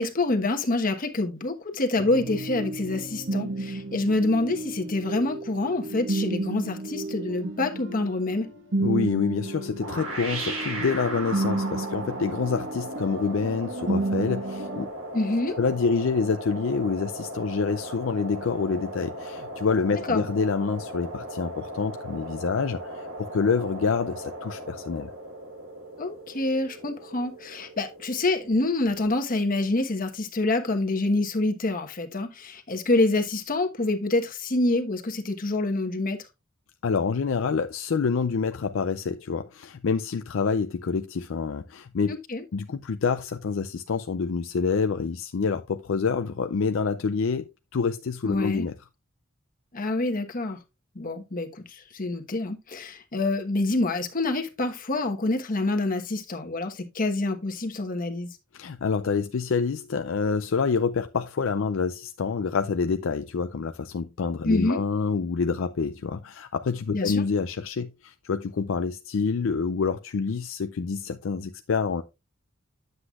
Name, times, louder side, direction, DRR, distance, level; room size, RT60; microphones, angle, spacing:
voice 1, 0.0-8.5 15.1-15.6 20.1-20.2 26.0-36.2 42.1-42.4 48.2-48.7 49.7-50.6 50.9-58.3 64.4-64.8 66.9-67.2, left 2 dB, 45° left, 1.2 m, -26 dB
sound 1, 2.0-14.9, right 2 dB, 65° right, 1.3 m, -32 dB
voice 2, 8.8-14.9 15.6-25.1 36.8-42.2 42.5-48.7 58.5-72.0, left 5 dB, 65° left, 0.5 m, -27 dB
sound 2, 9.8-28.6, right 1 dB, 90° right, 3.4 m, -37 dB
9.8 x 7.9 x 2.4 m
head